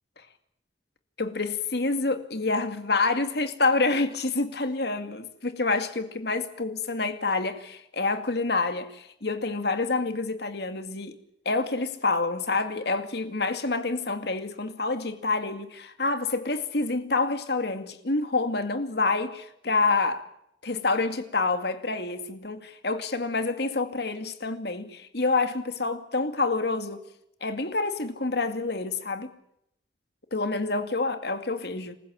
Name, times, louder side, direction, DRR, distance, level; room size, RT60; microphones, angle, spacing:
voice 1, 1.2-11.2 11.5-20.3 20.6-27.1 27.4-29.3 30.3-31.9, left 3 dB, 65° left, 2.3 m, -27 dB
27.0 x 15.5 x 8.9 m
head